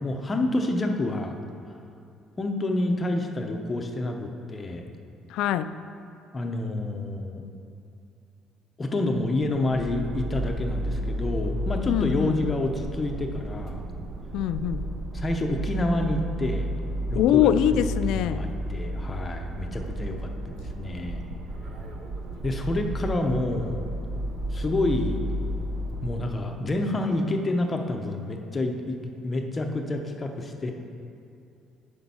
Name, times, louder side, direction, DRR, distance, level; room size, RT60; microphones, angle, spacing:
voice 1, 0.0-1.4 2.4-4.9 6.3-7.4 8.8-13.8 15.1-16.7 17.1-21.2 22.4-23.9 24.5-25.2 26.0-29.0 29.2-30.7, left 2 dB, 20° left, 3 dB, 0.7 m, -28 dB
voice 2, 5.3-5.7 11.9-12.5 14.3-14.9 17.2-18.4, left 11 dB, 70° left, 12 dB, 0.3 m, -23 dB
sound 1, 9.4-26.4, equal, 45° right, 0.8 m, -32 dB
10.5 x 5.2 x 5.5 m, 2.6 s
cardioid pair, 160°, 0 cm